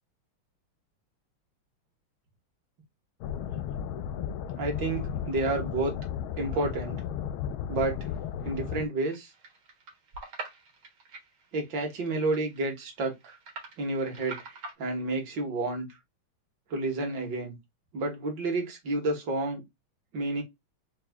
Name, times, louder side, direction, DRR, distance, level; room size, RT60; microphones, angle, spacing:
sound 1, 3.2-8.9, left 9 dB, 85° left, 1.4 m, -34 dB
voice 1, 4.6-5.9 6.4-7.0 7.7-8.1 8.4-9.3 11.5-13.4 13.8-14.4 14.8-15.9 16.7-17.5 17.9-19.6 20.1-20.4, right 2 dB, 60° right, 2.0 m, -30 dB
sound 2, 9.0-14.7, right 4 dB, 85° right, 2.2 m, -45 dB
4.6 x 2.4 x 3.5 m
omnidirectional pair, 2.2 m